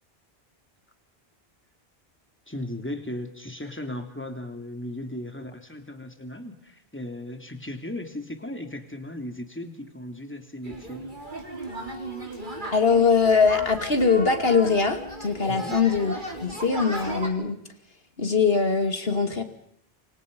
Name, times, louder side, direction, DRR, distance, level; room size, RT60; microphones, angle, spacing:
voice 1, 2.5-11.1 15.5-15.8, left 1 dB, 10° left, 6 dB, 3.0 m, -36 dB
sound 1, 10.6-17.3, right 1 dB, 50° right, 3.8 m, -36 dB
voice 2, 12.7-16.1 16.4-17.6 18.2-19.4, left 5 dB, 70° left, 8 dB, 2.9 m, -22 dB
28.5 x 25.5 x 5.5 m, 0.69 s
omnidirectional pair, 1.1 m